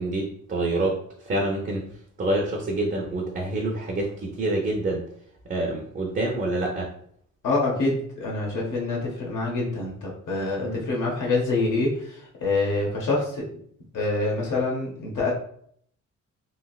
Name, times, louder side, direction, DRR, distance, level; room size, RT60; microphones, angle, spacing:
voice 1, 0.0-1.8 2.2-5.0 5.4-6.9 10.6-10.8, right 2 dB, 30° right, 0 dB, 0.5 m, -27 dB
voice 2, 7.4-13.5 13.9-15.3, left 3 dB, 75° left, -2 dB, 0.9 m, -26 dB
3.1 x 2.7 x 2.3 m, 0.63 s
cardioid pair, 135°, 31 cm